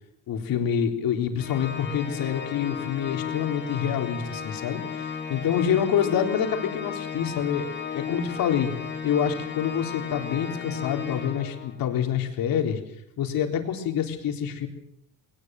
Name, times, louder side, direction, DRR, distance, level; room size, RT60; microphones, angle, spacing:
voice 1, 0.3-7.7 7.9-8.7 9.0-12.8 13.2-14.7, left 8 dB, 65° left, 4 dB, 3.8 m, -27 dB
Organ, 1.4-12.0, left 6 dB, 30° left, 2.0 m, -35 dB
21.5 x 19.0 x 7.7 m, 0.75 s
cardioid pair, 170°, 38 cm